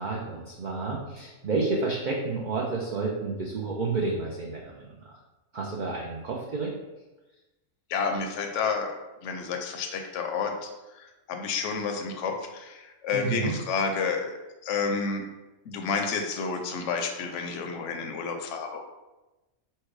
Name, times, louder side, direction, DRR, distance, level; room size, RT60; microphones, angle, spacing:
voice 1, 0.0-4.9 5.5-6.7 13.1-13.5, right 3 dB, 50° right, -3 dB, 0.5 m, -30 dB
voice 2, 7.9-9.0 9.2-15.3 15.7-18.8, left 5 dB, 70° left, 4 dB, 0.9 m, -30 dB
4.6 x 2.2 x 4.6 m, 1.1 s
omnidirectional pair, 1.4 m